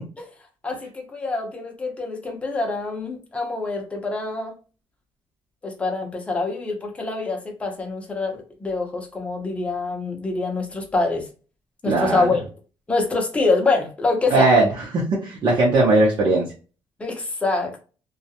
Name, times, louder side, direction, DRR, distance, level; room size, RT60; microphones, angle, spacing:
voice 1, 0.6-4.6 5.6-11.2 11.8-12.4 12.9-14.5 17.0-17.8, left 3 dB, 15° left, 0.6 m, -25 dB
voice 2, 11.9-12.3 14.3-16.5, right 2 dB, 60° right, 0.7 m, -19 dB
2.3 x 2.0 x 2.7 m
cardioid pair, 170°, 8 cm